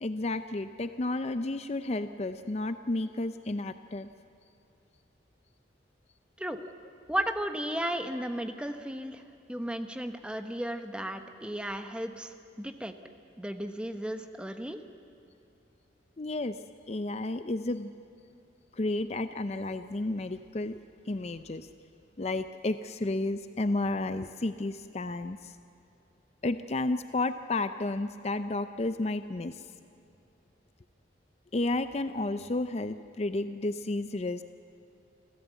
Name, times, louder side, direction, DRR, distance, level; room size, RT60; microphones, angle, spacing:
voice 1, 0.0-4.1 16.2-16.6 16.9-17.9 18.7-20.8 21.1-21.7 22.2-25.5 26.4-29.6 31.5-34.4, left 2 dB, 35° left, 10 dB, 0.5 m, -32 dB
voice 2, 7.1-9.2 9.5-12.9 13.4-14.8, right 1 dB, 5° right, 7 dB, 0.9 m, -34 dB
27.0 x 14.5 x 8.2 m, 2.7 s
head